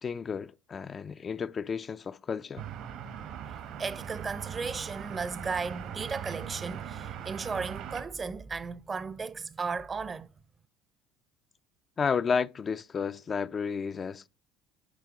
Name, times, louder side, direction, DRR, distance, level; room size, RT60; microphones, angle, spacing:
voice 1, 0.0-2.7 12.0-14.3, left 6 dB, 35° left, 0.3 m, -32 dB
sound 1, 2.6-8.0, right 9 dB, 65° right, 1.2 m, -40 dB
voice 2, 3.8-10.3, right 4 dB, 30° right, 0.6 m, -35 dB
10.5 x 3.6 x 4.9 m
supercardioid pair, 95°, 0 cm